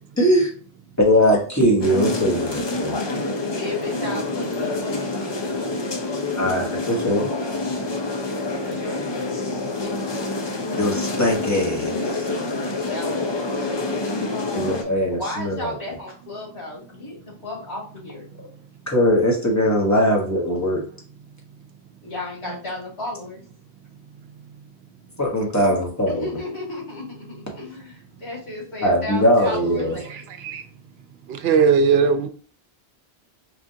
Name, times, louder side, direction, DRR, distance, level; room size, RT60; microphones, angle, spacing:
voice 1, 0.2-0.5 1.0-2.9 6.3-7.3 10.8-12.3 14.5-15.7 18.9-20.8 25.2-26.3 28.8-30.0, equal, 15° left, 1.0 m, -20 dB
sound 1, 1.8-14.8, left 2 dB, 35° left, 0.4 m, -27 dB
voice 2, 3.4-5.8 8.6-9.0 9.7-10.4 12.4-14.3 14.8-14.9 15.2-18.3 22.0-23.4 26.2-30.2, left 2 dB, 85° left, 2.4 m, -34 dB
voice 3, 30.1-30.6 31.4-32.3, right 6 dB, 75° right, 0.8 m, -19 dB
4.9 x 2.5 x 2.6 m
omnidirectional pair, 1.1 m